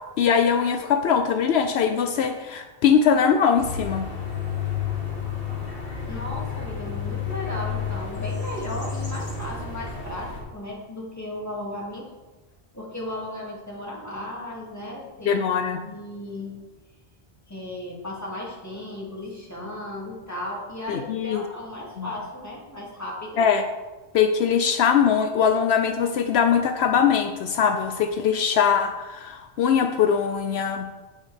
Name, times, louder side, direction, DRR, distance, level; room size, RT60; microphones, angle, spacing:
voice 1, 0.2-4.1 15.3-15.8 20.9-21.4 22.0-22.1 23.4-23.6 24.1-30.9, left 7 dB, 75° left, 7 dB, 0.9 m, -21 dB
sound 1, 3.6-10.4, left 7 dB, 60° left, 2.2 m, -31 dB
voice 2, 6.1-12.1 12.7-15.4 15.8-16.7 17.5-23.4, left 1 dB, 15° left, -4 dB, 2.4 m, -35 dB
11.0 x 8.2 x 3.4 m, 1.2 s
omnidirectional pair, 1.1 m